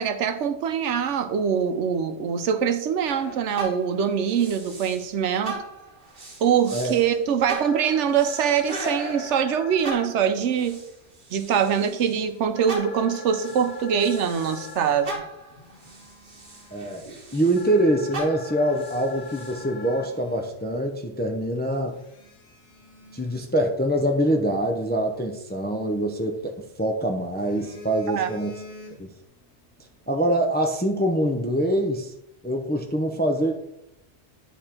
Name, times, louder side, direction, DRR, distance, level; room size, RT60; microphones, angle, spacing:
voice 1, 0.0-5.6 6.4-10.8 11.3-15.2 28.1-28.3, right 7 dB, 80° right, 9 dB, 1.0 m, -23 dB
sound 1, 3.1-5.1 5.4-12.2 12.7-17.8 18.1-19.6, right 2 dB, 45° right, 1.3 m, -39 dB
sound 2, 7.6-10.1 12.6-15.1 17.6-20.1, left 7 dB, 90° left, 1.2 m, -42 dB
Telephone, 11.5-14.0 15.3-17.2 17.8-18.0 18.5-18.6 19.0-21.0 21.3-21.4 21.9-24.3 25.8-26.8 27.2-29.3 29.6-29.9, left 3 dB, 70° left, 1.4 m, -47 dB
voice 2, 16.7-17.1 17.3-22.0 23.1-28.5 29.0-29.1 30.1-32.1 32.4-33.5, right 1 dB, 15° left, 3 dB, 0.4 m, -24 dB
9.6 x 3.5 x 4.3 m, 0.84 s
omnidirectional pair, 1.2 m